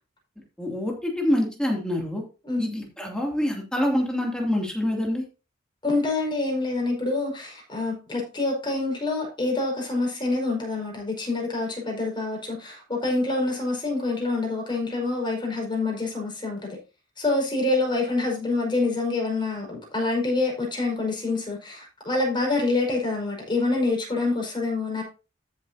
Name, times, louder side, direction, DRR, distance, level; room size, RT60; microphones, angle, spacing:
voice 1, 0.6-2.2 2.6-5.2, left 1 dB, 5° left, 2.7 m, -26 dB
voice 2, 5.8-16.8 17.2-25.0, left 2 dB, 25° left, 5.2 m, -26 dB
13.5 x 7.5 x 2.8 m
head